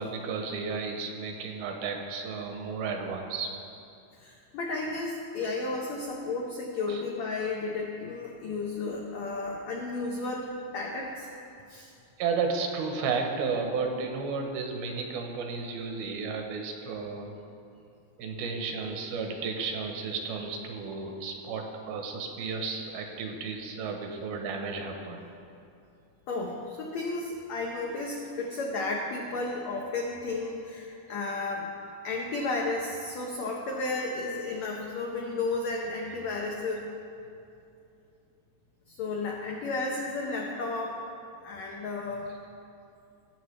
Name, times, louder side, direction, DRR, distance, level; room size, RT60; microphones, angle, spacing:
voice 1, 0.0-3.5 6.9-7.0 12.2-17.3 18.2-25.2, right 4 dB, 85° right, 3 dB, 2.8 m, -33 dB
voice 2, 4.1-11.3 11.7-11.9 26.3-31.7 32.0-36.9 38.9-41.0 41.4-42.3, left 3 dB, 85° left, -1 dB, 1.5 m, -33 dB
17.5 x 7.1 x 3.3 m, 2.7 s
omnidirectional pair, 4.3 m